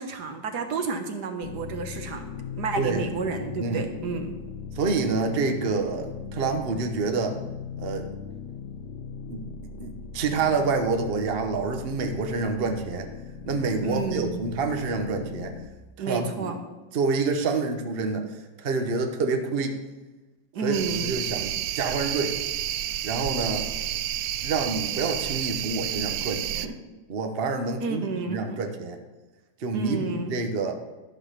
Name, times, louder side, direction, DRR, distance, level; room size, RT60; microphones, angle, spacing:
voice 1, 0.0-2.3 2.6-4.3 13.8-14.4 16.0-16.6 20.5-21.1 26.5-26.7 27.8-28.6 29.7-30.3, right 4 dB, 60° right, 6 dB, 1.5 m, -31 dB
sound 1, 1.4-15.7, left 6 dB, 70° left, 1.2 m, -39 dB
voice 2, 4.7-7.4 7.8-8.1 9.3-9.4 9.8-13.1 13.5-15.5 16.0-16.5 16.9-19.8 20.6-22.4 23.0-23.7 24.4-26.7 27.1-29.0 29.6-30.8, right 4 dB, 45° right, 5 dB, 0.8 m, -27 dB
sound 2, 20.7-26.7, right 12 dB, 85° right, 0.8 m, -30 dB
12.0 x 5.7 x 6.6 m, 1.2 s
omnidirectional pair, 2.1 m